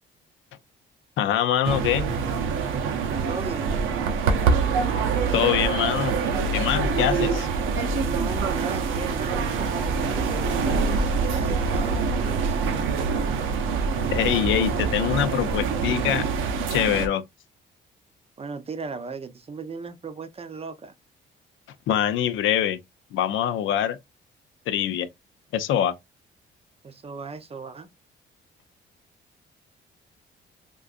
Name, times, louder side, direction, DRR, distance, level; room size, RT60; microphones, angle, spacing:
voice 1, 1.2-2.1 5.3-6.2 6.5-7.5 14.1-16.2 16.7-17.2 21.9-22.8 23.1-24.0 24.7-25.1 25.5-25.9, left 10 dB, 80° left, 0.5 m, -24 dB
sound 1, 1.6-17.1, right 5 dB, 85° right, 0.7 m, -25 dB
voice 2, 3.3-3.8 8.0-12.8 18.4-20.9 26.8-27.9, right 4 dB, 30° right, 0.6 m, -36 dB
3.7 x 2.5 x 2.4 m
cardioid pair, 90°, 20 cm